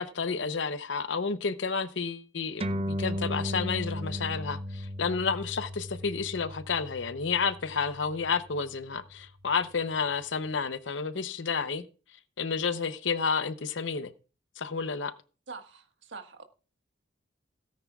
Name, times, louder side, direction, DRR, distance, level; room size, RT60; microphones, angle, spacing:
voice 1, 0.0-11.9 12.4-14.1 14.6-15.1, left 5 dB, 90° left, 0.8 m, -31 dB
sound 1, 2.6-9.4, equal, 30° right, 0.6 m, -36 dB
voice 2, 15.5-16.4, right 4 dB, 85° right, 1.6 m, -44 dB
17.5 x 9.5 x 2.4 m
head